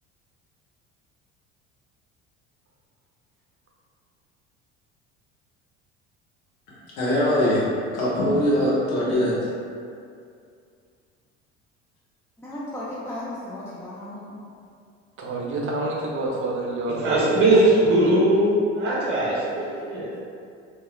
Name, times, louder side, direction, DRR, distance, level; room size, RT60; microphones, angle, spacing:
voice 1, 7.0-9.3, left 1 dB, 70° left, -8 dB, 1.1 m, -22 dB
voice 2, 12.4-14.4 19.6-19.7 20.0-20.2, left 1 dB, 5° left, -8 dB, 0.3 m, -36 dB
voice 3, 15.2-17.6 17.9-18.2, right 2 dB, 35° right, -2 dB, 0.6 m, -29 dB
voice 4, 17.0-20.1, right 1 dB, 70° right, -9 dB, 0.8 m, -20 dB
2.9 x 2.3 x 2.2 m, 2.4 s
hypercardioid pair, 65°, 36 cm